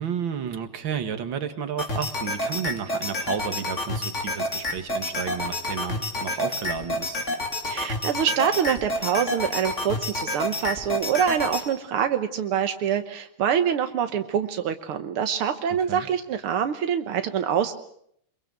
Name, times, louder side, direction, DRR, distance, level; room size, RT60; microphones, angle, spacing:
voice 1, 0.0-7.2 15.9-16.1, right 7 dB, 65° right, 8 dB, 2.5 m, -32 dB
sound 1, 1.8-11.6, left 1 dB, 35° left, 3.6 m, -29 dB
voice 2, 7.7-17.7, right 8 dB, 85° right, 8 dB, 2.1 m, -25 dB
25.0 x 23.0 x 7.6 m, 0.69 s
omnidirectional pair, 2.3 m